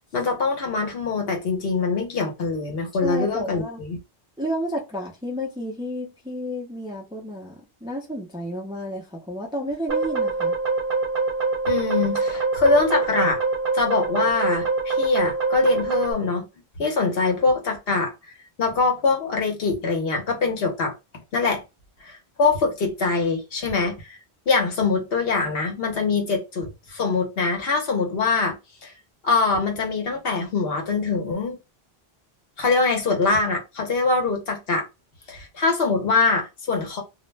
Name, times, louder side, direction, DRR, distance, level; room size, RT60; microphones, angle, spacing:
voice 1, 0.1-4.0 11.7-13.4 13.7-16.5 16.8-18.1 18.6-20.9 21.3-21.6 22.0-24.2 24.5-28.6 28.8-28.9 29.2-31.6 32.6-34.9 35.3-37.0, left 4 dB, 65° left, 1.0 m, -23 dB
voice 2, 3.0-3.8 4.4-10.6, equal, 5° right, 0.5 m, -31 dB
sound 1, 9.9-16.1, right 3 dB, 60° right, 0.9 m, -24 dB
2.4 x 2.1 x 3.1 m
omnidirectional pair, 1.1 m